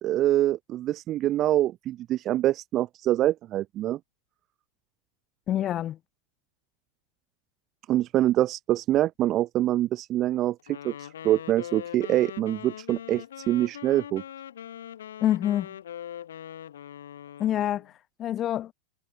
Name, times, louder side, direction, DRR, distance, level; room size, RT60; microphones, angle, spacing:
voice 1, 0.0-4.0 7.9-14.2, right 13 dB, 35° right, 0.6 m, -25 dB
voice 2, 5.5-6.0 15.2-15.7 17.4-17.9 18.2-18.7, left 11 dB, 30° left, 0.7 m, -26 dB
Wind instrument woodwind instrument, 10.7-17.9, left 10 dB, 65° left, 4.5 m, -41 dB
figure-of-eight pair, 90°, 0 cm